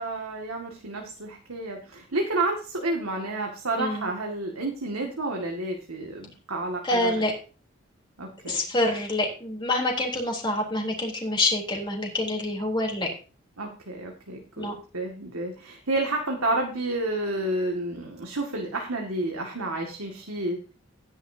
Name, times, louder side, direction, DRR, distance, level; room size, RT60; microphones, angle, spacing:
voice 1, 0.0-7.1 8.2-8.6 13.6-14.7 14.9-20.6, right 2 dB, 85° right, 1 dB, 2.1 m, -30 dB
voice 2, 3.8-4.1 6.8-7.3 8.5-13.1 14.6-14.7, left 2 dB, 20° left, 0 dB, 3.5 m, -26 dB
14.5 x 10.5 x 2.8 m, 0.36 s
head